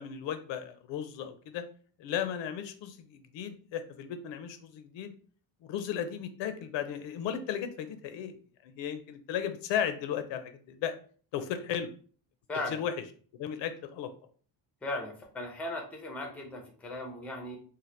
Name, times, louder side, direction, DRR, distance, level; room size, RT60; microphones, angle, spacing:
voice 1, 0.0-1.6 2.0-5.1 5.6-8.3 8.6-10.9 11.3-11.9 12.7-12.9 13.4-14.1, left 9 dB, 75° left, 9 dB, 0.5 m, -35 dB
voice 2, 12.5-12.8 14.8-17.6, left 2 dB, 5° left, 2 dB, 0.4 m, -37 dB
2.8 x 2.1 x 3.2 m, 0.43 s
cardioid pair, 155°, 44 cm